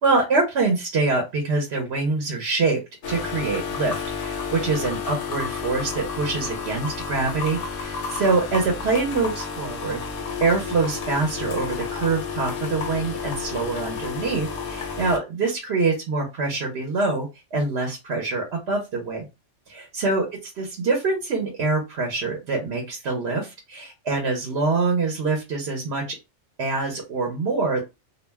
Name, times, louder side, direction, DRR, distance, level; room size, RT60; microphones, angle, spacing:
voice 1, 0.0-2.8 3.1-10.0 10.4-19.2 19.7-20.2 20.6-26.2 26.6-27.8, right 3 dB, 60° right, 1 dB, 0.9 m, -25 dB
sound 1, 3.0-15.2, left 5 dB, 60° left, 0.7 m, -31 dB
2.4 x 2.1 x 3.3 m, 0.25 s
omnidirectional pair, 1.3 m